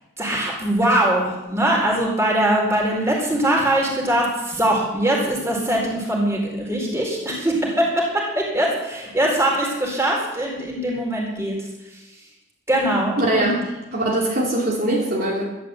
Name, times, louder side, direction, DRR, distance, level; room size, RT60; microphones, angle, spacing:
voice 1, 0.2-11.6 12.7-13.5, right 1 dB, 15° right, -2 dB, 4.2 m, -22 dB
voice 2, 13.2-13.6 13.9-15.4, right 1 dB, 45° right, -4 dB, 3.0 m, -21 dB
12.5 x 12.0 x 7.9 m, 1.0 s
head